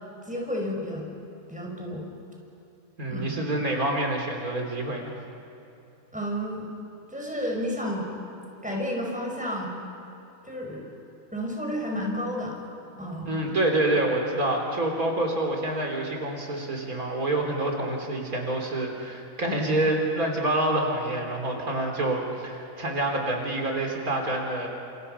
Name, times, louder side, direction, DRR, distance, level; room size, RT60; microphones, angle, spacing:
voice 1, 0.3-1.1 1.5-2.0 3.1-3.4 6.1-6.7 7.1-8.1 8.6-9.8 10.4-10.9 11.3-12.6 13.0-13.4, equal, 5° right, -1 dB, 5.5 m, -31 dB
voice 2, 3.0-5.1 13.3-24.7, right 1 dB, 80° right, 1 dB, 4.0 m, -27 dB
29.5 x 28.0 x 5.7 m, 2.9 s
omnidirectional pair, 1.5 m